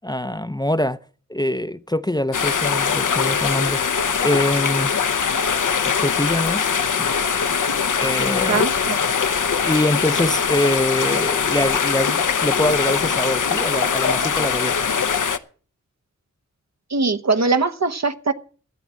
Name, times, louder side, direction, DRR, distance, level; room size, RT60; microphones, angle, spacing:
voice 1, 0.0-1.0 1.3-3.8 4.2-4.9 5.8-6.7 7.0-7.4 7.9-8.7 9.6-14.9, left 1 dB, 15° left, 0.6 m, -24 dB
sound 1, 2.3-15.4, left 6 dB, 80° left, 0.8 m, -21 dB
voice 2, 8.5-9.0 16.9-18.3, right 4 dB, 60° right, 1.0 m, -21 dB
12.5 x 8.5 x 7.5 m
wide cardioid pair, 75°, 31 cm